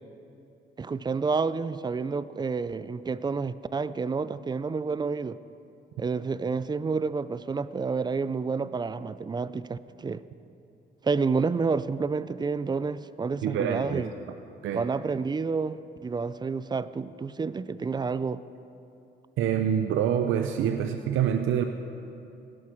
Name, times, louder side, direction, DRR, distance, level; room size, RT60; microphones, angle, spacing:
voice 1, 0.8-5.4 6.0-10.2 11.0-14.1 14.7-18.4, right 4 dB, 20° right, 16 dB, 0.4 m, -29 dB
voice 2, 13.4-14.1 14.6-14.8 19.4-21.6, right 9 dB, 80° right, 6 dB, 0.6 m, -26 dB
17.0 x 11.5 x 4.5 m, 2.8 s
cardioid pair, 90°, 20 cm